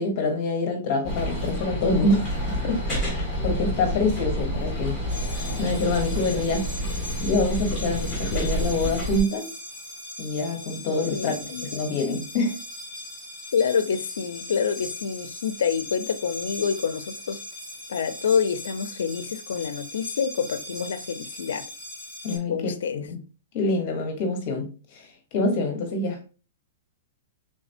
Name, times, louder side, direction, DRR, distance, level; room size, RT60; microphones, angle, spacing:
voice 1, 0.0-2.3 2.6-5.0 5.6-6.7 7.2-9.5 10.2-11.3 11.6-12.6 22.2-23.2 23.5-24.7 24.9-25.0 25.3-26.2, left 2 dB, 35° left, 1.2 m, -26 dB
sound 1, 1.0-9.2, equal, ahead, 2.2 m, -29 dB
sound 2, 5.1-22.4, left 1 dB, 15° right, 2.3 m, -39 dB
voice 2, 11.1-11.8 13.5-17.4 17.9-21.6 22.5-23.0, left 6 dB, 80° left, 0.6 m, -27 dB
5.0 x 3.7 x 2.6 m
hypercardioid pair, 175°, 0 cm